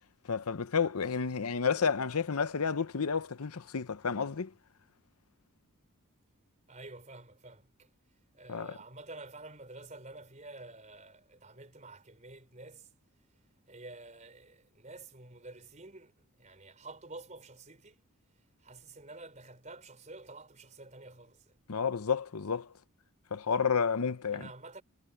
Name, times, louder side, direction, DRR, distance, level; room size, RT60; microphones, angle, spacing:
voice 1, 0.3-4.5 8.5-8.7 21.7-22.7 23.3-24.4, left 6 dB, 85° left, 0.8 m, -30 dB
voice 2, 6.7-7.9 8.3-12.9 13.7-18.0 18.6-21.6 24.3-24.8, right 2 dB, 35° right, 4.4 m, -49 dB
head